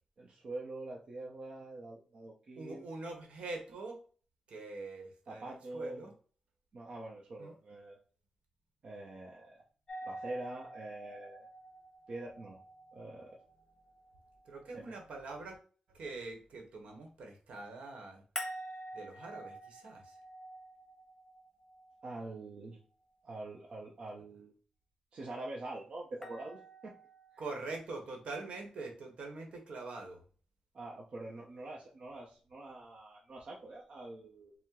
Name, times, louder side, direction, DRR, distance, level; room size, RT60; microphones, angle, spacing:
voice 1, 0.2-2.9 5.3-6.1 6.7-8.0 8.8-9.6 10.0-11.5 12.1-12.6 12.9-13.4 14.7-14.9 22.0-22.8 23.2-24.5 25.1-27.0 27.3-27.4 30.7-34.5, right 2 dB, 55° right, -2 dB, 0.6 m, -45 dB
voice 2, 2.6-4.0 4.5-6.1 7.4-7.5 14.5-15.6 15.9-18.2 18.9-20.2 27.4-30.2, right 3 dB, 70° right, 3 dB, 1.0 m, -44 dB
sound 1, 9.9-14.8 18.4-22.5 26.2-27.4, right 1 dB, 20° left, 0.9 m, -47 dB
4.4 x 2.0 x 3.6 m, 0.41 s
wide cardioid pair, 115°, 2 cm